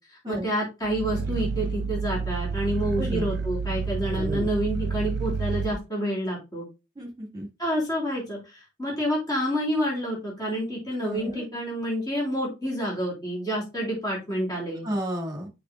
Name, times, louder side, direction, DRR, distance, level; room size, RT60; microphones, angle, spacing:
voice 1, 0.1-6.7 7.6-14.8, equal, 20° left, -5 dB, 3.6 m, -28 dB
Growling, 0.8-5.8, right 5 dB, 55° right, 0.4 m, -29 dB
voice 2, 3.0-3.3 4.1-4.5 7.0-7.5 11.0-11.4 14.8-15.5, equal, 20° right, 2 dB, 2.0 m, -32 dB
8.4 x 5.6 x 2.3 m, 0.27 s
head